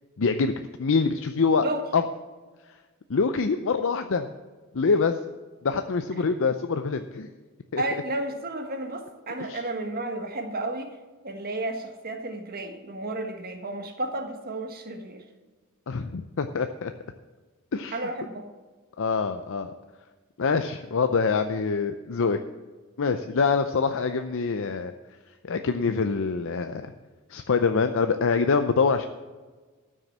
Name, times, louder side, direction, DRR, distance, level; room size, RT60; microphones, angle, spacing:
voice 1, 0.2-0.5 0.8-1.6 1.9-2.0 3.1-4.3 4.7-5.2 5.6-7.3 7.7-7.8 9.5-9.6 15.9-16.9 17.7-18.0 19.0-19.7 20.4-22.4 23.0-24.9 25.4-26.9 27.3-29.1, left 5 dB, 60° left, 8 dB, 0.6 m, -25 dB
voice 2, 7.8-10.9 11.2-15.2 17.9-18.5, right 2 dB, 45° right, 5 dB, 1.5 m, -32 dB
13.5 x 6.4 x 7.3 m, 1.4 s
head